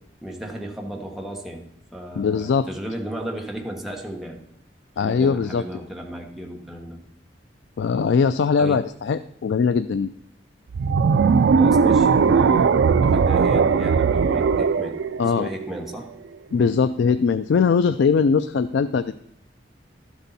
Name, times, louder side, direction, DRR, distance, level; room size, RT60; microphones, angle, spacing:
voice 1, 0.2-4.4 5.0-7.0 8.6-8.8 11.5-15.0 15.4-16.1 16.6-16.7, right 1 dB, ahead, 0 dB, 1.2 m, -34 dB
voice 2, 2.2-2.7 5.0-5.6 7.8-10.1 15.2-15.5 16.5-19.2, left 5 dB, 75° left, 12 dB, 0.3 m, -21 dB
sound 1, 10.7-16.0, right 5 dB, 75° right, 0.4 m, -19 dB
12.5 x 8.0 x 4.1 m, 0.79 s
head